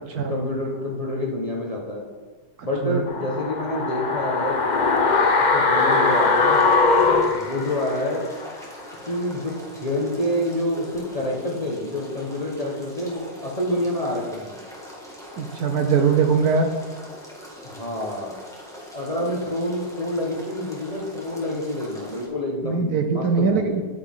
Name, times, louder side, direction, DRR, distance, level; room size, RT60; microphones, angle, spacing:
voice 1, 0.3-2.0 2.6-4.6 5.4-6.7 7.3-8.3 9.1-14.5 17.6-18.4 18.9-23.9, left 1 dB, 25° left, -2 dB, 1.1 m, -27 dB
voice 2, 2.6-3.0 15.4-16.7 22.6-23.8, right 5 dB, 65° right, 6 dB, 1.1 m, -21 dB
sound 1, 3.1-8.2 8.5-8.6, left 3 dB, 60° left, 0.4 m, -20 dB
sound 2, 5.8-22.3, equal, ahead, 1.7 m, -42 dB
9.9 x 9.2 x 3.7 m, 1.5 s
omnidirectional pair, 1.9 m